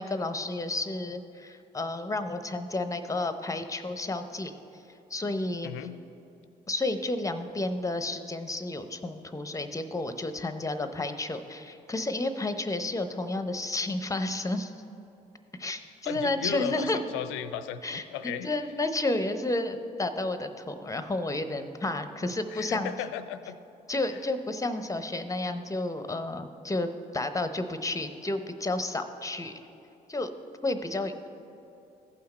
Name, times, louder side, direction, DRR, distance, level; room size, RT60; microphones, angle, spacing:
voice 1, 0.0-4.5 5.1-5.7 6.7-14.7 15.6-17.0 17.8-18.0 18.4-22.9 23.9-29.5 30.1-30.3 30.6-31.3, left 2 dB, 15° left, 9 dB, 0.7 m, -31 dB
voice 2, 5.6-6.0 16.1-18.5 22.5-23.6 24.1-24.2, left 9 dB, 70° left, 13 dB, 0.5 m, -35 dB
14.5 x 5.8 x 4.3 m, 2.8 s
hypercardioid pair, 40°, 21 cm